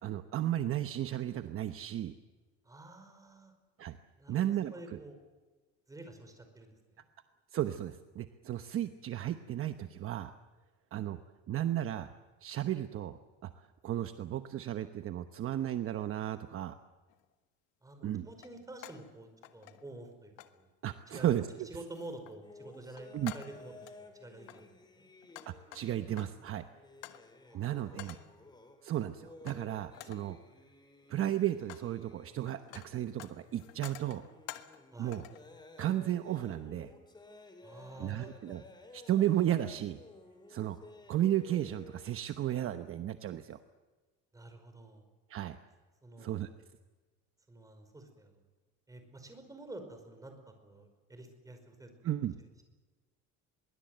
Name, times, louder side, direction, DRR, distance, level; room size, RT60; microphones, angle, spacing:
voice 1, 0.0-2.1 3.8-4.0 4.3-5.0 7.5-10.3 10.9-11.2 11.5-12.1 12.4-16.8 18.0-18.3 20.8-21.7 23.1-23.3 25.5-26.6 27.5-28.2 28.8-30.4 31.1-34.3 35.0-35.2 35.8-36.9 38.0-38.6 38.9-40.0 40.5-40.8 41.1-43.6 45.3-45.6 46.2-46.5 52.0-52.4, right 12 dB, 45° right, 9 dB, 1.1 m, -34 dB
voice 2, 2.6-3.5 4.2-5.2 5.9-7.1 17.8-20.7 21.1-21.3 21.7-25.1 27.4-28.5 34.9-35.2 37.6-38.3 44.3-45.1 46.0-46.4 47.5-48.4 48.9-50.3 50.6-51.9, right 2 dB, 10° right, 6 dB, 5.2 m, -49 dB
sound 1, 17.1-17.2 18.4-19.1 19.4-20.1 20.4-20.6 21.2-21.5 21.9-22.4 22.7-24.0 24.4-26.5 27.0-27.3 28.0-28.4 29.5-29.7 29.9-30.3 31.0-31.9 32.2-34.8 35.1-35.5, left 15 dB, 85° left, 1.7 m, -50 dB
sound 2, 22.4-42.1, left 2 dB, 15° left, 3.5 m, -55 dB
24.0 x 23.0 x 8.0 m, 1.3 s
cardioid pair, 135°, 31 cm